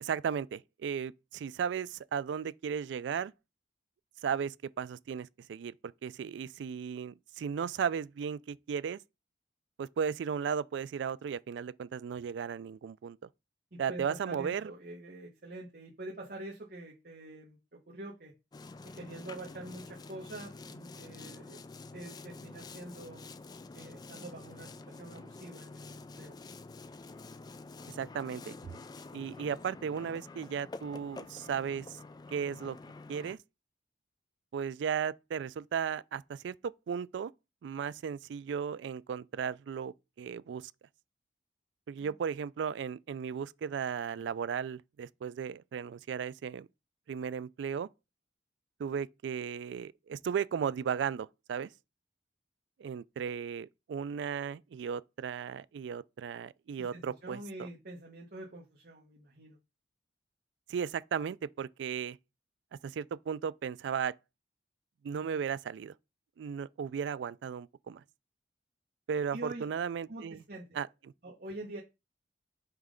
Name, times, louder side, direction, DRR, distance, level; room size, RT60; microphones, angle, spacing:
voice 1, 0.0-3.3 4.2-5.7 6.0-9.0 9.8-13.2 13.8-14.7 27.9-28.6 29.1-32.0 32.3-32.8 33.1-33.4 34.5-37.3 37.6-40.7 41.9-46.7 47.1-47.9 48.8-51.7 52.8-57.7 60.7-62.2 62.7-64.1 65.0-65.9 66.4-68.0 69.1-70.4 70.8-70.9, right 7 dB, 75° right, 0.3 m, -35 dB
voice 2, 13.7-18.3 18.9-21.6 21.9-23.2 23.7-26.4 56.8-59.6 69.3-69.6 70.1-70.8 71.2-71.8, right 2 dB, 55° right, 1.2 m, -45 dB
Boat Water vehicle, 18.5-33.4, left 3 dB, 20° left, 0.3 m, -48 dB
5.9 x 3.2 x 5.0 m
head